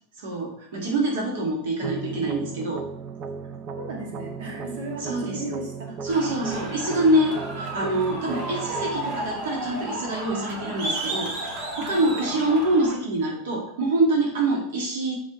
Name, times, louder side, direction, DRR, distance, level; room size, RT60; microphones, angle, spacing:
voice 1, 0.2-2.8 5.0-5.4 6.0-15.2, right 1 dB, 90° right, -1 dB, 1.9 m, -25 dB
sound 1, 1.8-10.8, right 5 dB, 25° right, 0.4 m, -37 dB
voice 2, 3.4-6.0 11.8-11.9 12.3-12.4, right 2 dB, 70° right, -1 dB, 2.1 m, -36 dB
sound 2, 6.1-13.0, right 1 dB, 45° right, 1.5 m, -33 dB
7.5 x 5.8 x 3.1 m, 0.69 s
supercardioid pair, 175°, 0 cm